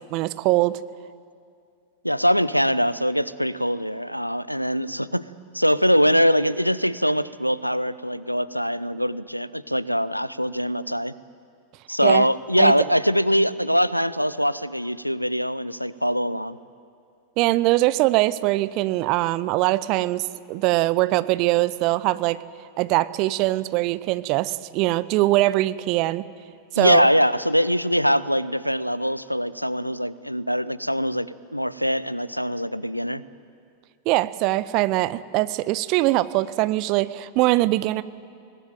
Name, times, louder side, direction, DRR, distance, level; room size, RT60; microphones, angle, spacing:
voice 1, 0.1-0.8 12.0-12.3 12.6-12.7 17.4-22.4 22.8-26.3 26.7-27.1 34.1-38.0, right 18 dB, 40° right, 17 dB, 0.7 m, -22 dB
voice 2, 2.0-5.3 5.5-11.1 11.9-16.6 26.8-33.2, equal, 90° left, 18 dB, 0.7 m, -22 dB
23.0 x 19.0 x 9.3 m, 2.3 s
figure-of-eight pair, 90°, 0 cm